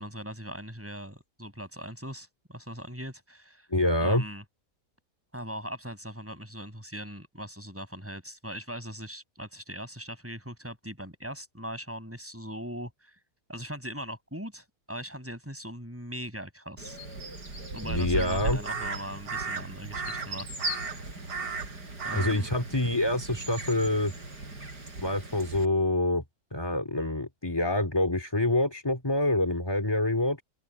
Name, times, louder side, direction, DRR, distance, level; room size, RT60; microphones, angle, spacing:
voice 1, 0.0-3.7 4.0-4.4 5.3-13.1 13.5-17.0 17.7-21.0 22.0-22.5, equal, 10° right, 5.7 m, -40 dB
voice 2, 3.7-4.2 17.8-18.6 22.1-24.1 25.0-26.2 26.5-30.4, left 1 dB, 15° left, 2.6 m, -26 dB
Crow, 16.8-25.6, right 3 dB, 85° right, 5.6 m, -36 dB
open air
omnidirectional pair, 1.7 m